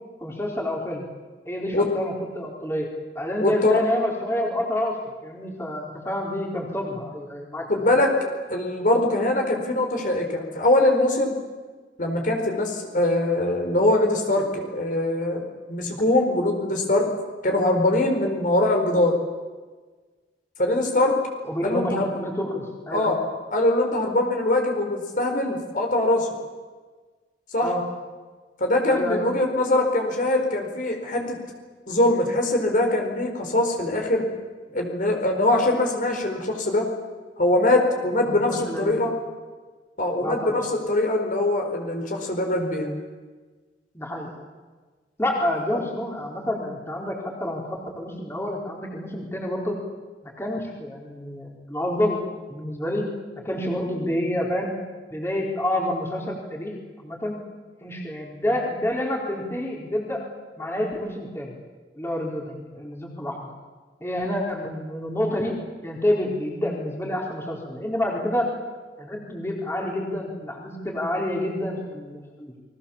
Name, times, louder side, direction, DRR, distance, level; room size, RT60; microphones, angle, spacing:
voice 1, 0.2-1.1 1.5-5.0 5.2-7.6 21.4-23.2 27.6-27.8 28.9-29.3 38.3-39.0 40.2-40.6 43.9-44.3 45.2-49.8 50.4-52.2 52.5-53.1 53.4-54.7 55.1-56.7 57.0-57.4 57.8-60.3 60.6-61.5 61.9-63.5 64.0-68.5 69.0-72.6, left 1 dB, 15° left, -1 dB, 4.3 m, -28 dB
voice 2, 3.4-3.8 7.7-8.1 8.5-11.3 12.0-17.1 17.4-19.2 20.6-21.2 21.6-22.2 22.9-23.2 23.5-26.3 27.5-27.7 28.6-31.4 31.9-34.2 34.7-36.9 37.4-39.1 40.0-42.9, left 1 dB, 50° left, 3 dB, 4.7 m, -22 dB
29.5 x 22.0 x 7.3 m, 1.4 s
head